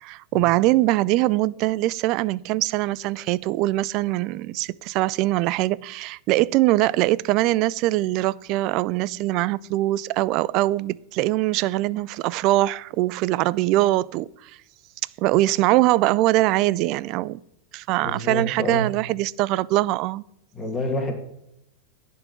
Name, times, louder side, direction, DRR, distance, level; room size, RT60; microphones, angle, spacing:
voice 1, 0.0-14.5 15.2-17.4 17.7-20.2, right 17 dB, 50° right, 0.3 m, -22 dB
voice 2, 18.0-18.9 20.5-21.1, left 1 dB, 15° left, 2.2 m, -28 dB
10.5 x 4.6 x 8.1 m
hypercardioid pair, 110°, 0 cm